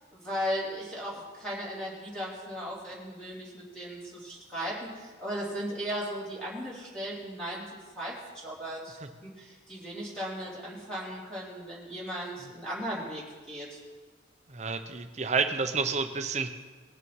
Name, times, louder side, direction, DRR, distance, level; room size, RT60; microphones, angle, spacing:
voice 1, 0.1-13.8, equal, 5° left, -8 dB, 3.2 m, -37 dB
voice 2, 14.5-16.5, right 4 dB, 35° right, 8 dB, 0.8 m, -30 dB
19.5 x 6.8 x 4.7 m, 1.4 s
head